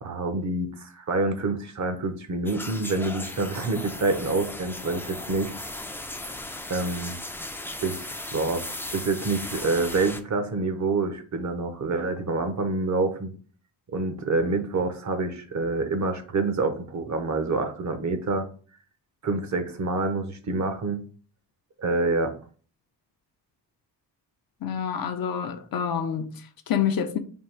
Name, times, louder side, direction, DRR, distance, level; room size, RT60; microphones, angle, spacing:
voice 1, 0.0-5.5 6.7-7.5 7.8-8.6 8.9-13.3 13.9-18.5 19.2-21.0 21.8-22.3, right 3 dB, 45° right, 0.7 m, -27 dB
sound 1, 2.5-10.2, left 1 dB, 5° left, 0.4 m, -37 dB
voice 2, 24.6-27.2, left 8 dB, 55° left, 0.6 m, -28 dB
3.6 x 2.3 x 4.4 m
cardioid pair, 95°, 42 cm